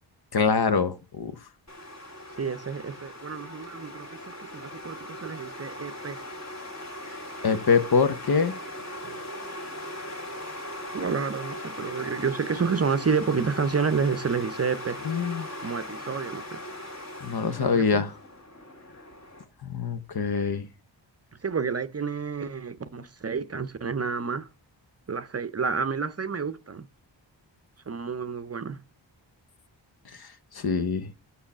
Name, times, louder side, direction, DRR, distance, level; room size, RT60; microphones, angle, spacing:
voice 1, 0.3-1.3 7.4-8.5 15.0-15.5 17.2-18.1 19.6-20.7 30.2-30.3 30.5-31.1, left 5 dB, 55° left, 1.0 m, -24 dB
sound 1, 1.7-19.4, left 1 dB, 35° left, 2.1 m, -39 dB
voice 2, 2.4-6.2 10.9-15.0 15.6-16.6 17.6-18.0 21.4-24.5 25.1-26.9 27.9-28.8, right 5 dB, 35° right, 0.6 m, -29 dB
6.4 x 5.6 x 7.2 m
wide cardioid pair, 85°, 45 cm